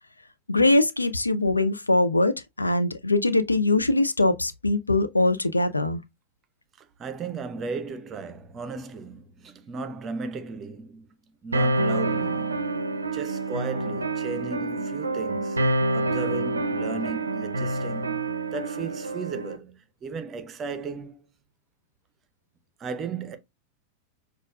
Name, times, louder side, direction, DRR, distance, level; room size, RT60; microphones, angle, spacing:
voice 1, 0.5-2.3 2.6-6.0, left 2 dB, 80° left, 0.4 m, -22 dB
voice 2, 6.8-11.1 11.4-21.3 22.8-23.4, right 5 dB, 25° right, 0.7 m, -36 dB
sound 1, 11.5-19.6, right 2 dB, 80° right, 0.5 m, -27 dB
6.2 x 2.4 x 2.3 m
figure-of-eight pair, 90°, 0 cm